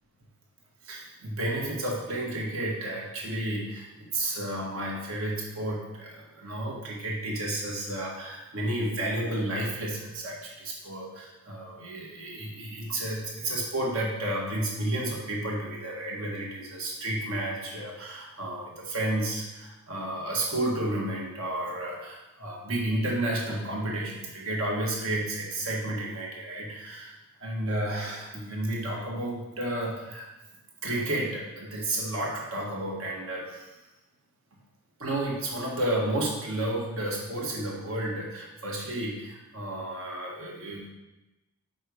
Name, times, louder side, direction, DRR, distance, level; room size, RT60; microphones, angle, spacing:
voice 1, 0.8-27.1 27.4-30.3 30.8-33.7 35.0-40.9, right 1 dB, 70° right, -3 dB, 1.4 m, -32 dB
5.5 x 3.9 x 4.8 m, 1.0 s
head